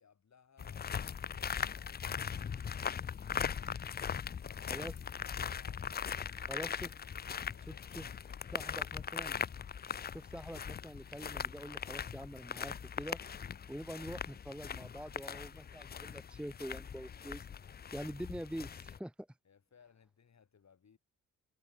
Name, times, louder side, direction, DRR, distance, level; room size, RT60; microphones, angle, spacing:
voice 1, 0.0-3.8 4.2-4.8 5.1-6.5 6.9-9.2 19.4-21.0, left 6 dB, 50° left, 7.7 m, -65 dB
sound 1, 0.6-19.0, left 7 dB, 30° left, 0.4 m, -40 dB
voice 2, 6.5-6.9 7.7-8.1 8.5-9.4 10.1-13.2 13.7-17.5 17.9-19.3, equal, 5° right, 1.2 m, -45 dB
cardioid pair, 100°, 35 cm